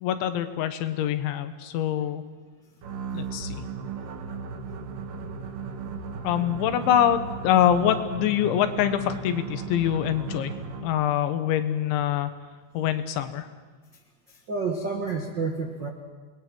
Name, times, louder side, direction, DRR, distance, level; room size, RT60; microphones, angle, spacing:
voice 1, 0.0-2.2 3.1-3.6 6.2-10.5 10.8-12.3 12.8-13.5, left 10 dB, 90° left, 9 dB, 3.6 m, -24 dB
sound 1, 2.8-11.1, right 5 dB, 60° right, 2.5 m, -36 dB
voice 2, 14.5-15.9, right 4 dB, 85° right, 2 dB, 1.0 m, -29 dB
28.0 x 21.0 x 6.2 m, 1.3 s
omnidirectional pair, 5.2 m